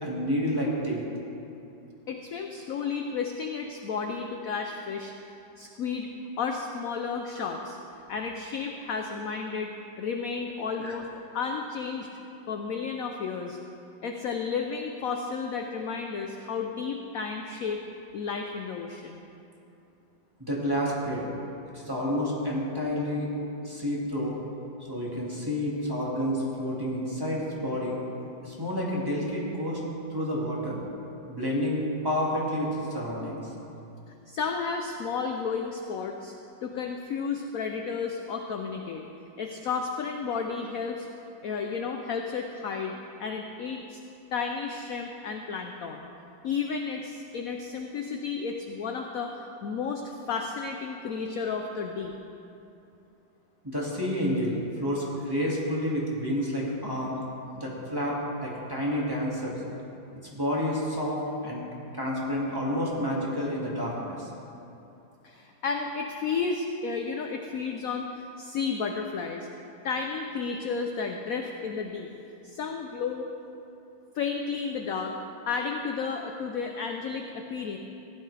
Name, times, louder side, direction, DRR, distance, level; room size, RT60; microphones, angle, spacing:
voice 1, 0.0-1.0 10.8-10.9 20.4-21.3 21.7-23.3 23.6-24.4 24.8-28.0 28.4-29.8 30.1-30.8 31.3-33.4 53.6-57.2 57.6-59.6 60.3-61.7 61.9-64.3, equal, 10° right, -5 dB, 1.9 m, -29 dB
voice 2, 2.1-5.1 5.6-6.1 6.4-7.8 8.1-9.7 10.0-11.1 11.3-12.1 12.5-13.6 14.0-17.8 18.1-19.2 34.1-36.3 36.6-39.0 39.4-41.1 41.4-42.9 43.2-44.0 44.3-46.1 46.4-52.1 65.2-69.5 69.8-72.1 72.4-73.3 74.1-75.2 75.5-77.8, left 5 dB, 65° left, 3 dB, 0.8 m, -32 dB
15.5 x 12.0 x 3.3 m, 2.8 s
omnidirectional pair, 2.1 m